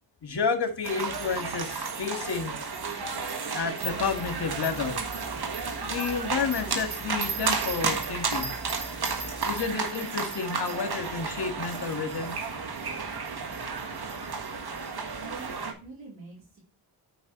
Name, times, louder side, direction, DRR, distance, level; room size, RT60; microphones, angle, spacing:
voice 1, 0.2-2.6 3.5-5.0 5.8-8.5 9.4-12.3, left 5 dB, 60° left, 5 dB, 1.9 m, -30 dB
sound 1, 0.8-15.7, right 4 dB, 55° right, 1.6 m, -32 dB
sound 2, 3.6-9.7, right 2 dB, 25° right, 1.4 m, -43 dB
voice 2, 15.2-16.6, right 3 dB, 85° right, -2 dB, 3.8 m, -46 dB
9.3 x 5.5 x 3.0 m, 0.34 s
cardioid pair, 50°, 45 cm